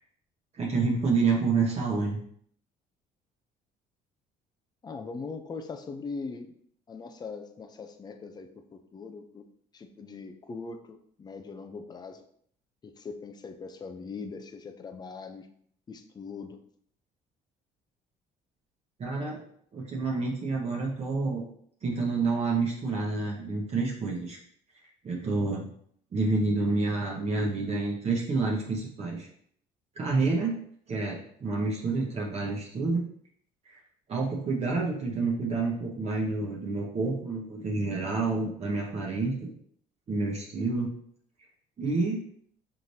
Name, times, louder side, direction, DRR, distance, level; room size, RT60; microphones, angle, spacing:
voice 1, 0.5-2.2 19.0-19.4 19.7-21.4 21.8-24.4 25.0-25.7 26.1-29.3 30.0-30.6 30.9-33.0 33.6-33.8 34.1-39.5 40.1-40.9 41.8-42.2, right 3 dB, 40° right, -3 dB, 1.0 m, -28 dB
voice 2, 4.8-6.5 6.9-9.5 9.7-12.2 12.8-15.5 15.9-16.6, left 4 dB, 25° left, 7 dB, 0.5 m, -41 dB
5.7 x 3.2 x 2.7 m, 0.63 s
cardioid pair, 110°, 17 cm